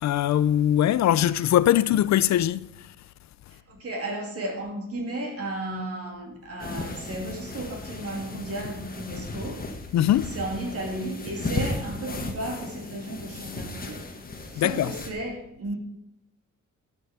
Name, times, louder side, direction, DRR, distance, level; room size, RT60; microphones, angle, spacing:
voice 1, 0.0-2.9 9.9-10.3 14.6-14.9, left 11 dB, 65° left, 0.5 m, -21 dB
voice 2, 3.5-9.7 10.3-14.0 14.5-15.8, right 1 dB, 50° right, 2.9 m, -34 dB
sound 1, 6.6-15.1, left 3 dB, 30° left, 1.4 m, -35 dB
11.5 x 5.9 x 6.7 m
cardioid pair, 130°, 31 cm